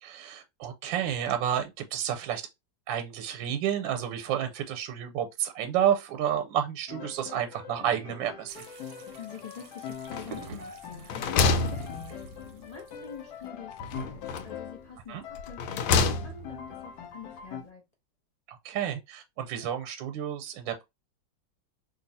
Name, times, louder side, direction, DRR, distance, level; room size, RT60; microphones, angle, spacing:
voice 1, 0.0-2.4 2.9-8.6 15.1-15.2 18.5-20.8, right 10 dB, 90° right, 1.3 m, -30 dB
Piano, 6.9-14.9 15.2-17.6, left 8 dB, 65° left, 1.1 m, -43 dB
sound 1, 8.5-13.5, right 7 dB, 70° right, 1.1 m, -50 dB
voice 2, 9.2-17.8, left 6 dB, 50° left, 0.4 m, -46 dB
sound 2, 10.1-10.6 10.9-12.5 13.8-14.7 15.3-16.6, left 4 dB, 90° left, 1.3 m, -28 dB
2.9 x 2.6 x 4.0 m
omnidirectional pair, 2.0 m